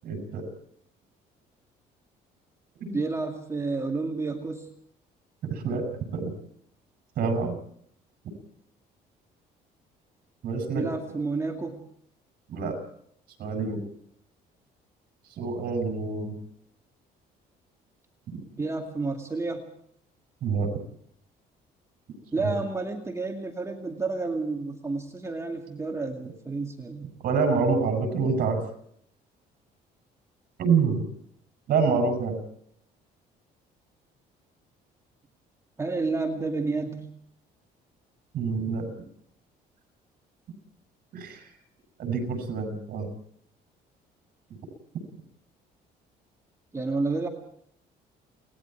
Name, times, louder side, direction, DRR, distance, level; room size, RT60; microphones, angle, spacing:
voice 1, 0.0-0.5 2.8-3.0 5.4-5.8 6.1-6.4 7.2-7.5 10.4-10.9 12.5-12.7 13.4-13.8 15.4-16.4 18.3-18.4 20.4-20.7 22.4-22.5 27.2-28.6 30.6-31.1 31.7-32.4 38.3-38.9 41.1-41.5 42.0-43.1, right 5 dB, 60° right, 6 dB, 7.8 m, -26 dB
voice 2, 2.9-4.7 10.7-11.8 18.6-19.7 22.3-27.1 35.8-37.1 46.7-47.3, right 3 dB, 15° right, 3 dB, 2.3 m, -30 dB
29.5 x 20.0 x 4.7 m, 0.66 s
cardioid pair, 110°, 17 cm